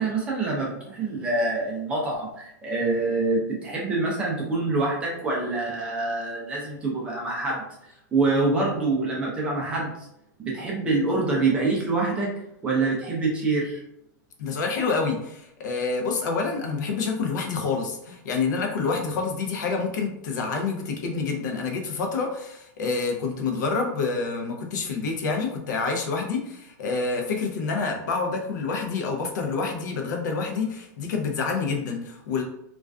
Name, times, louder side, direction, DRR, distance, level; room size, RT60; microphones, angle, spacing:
voice 1, 0.0-7.6 8.1-10.1 10.4-12.3 12.6-13.8, right 3 dB, 10° right, -3 dB, 0.3 m, -25 dB
voice 2, 14.4-32.4, left 4 dB, 70° left, 2 dB, 0.6 m, -27 dB
2.4 x 2.3 x 2.2 m, 0.79 s
supercardioid pair, 170°, 10 cm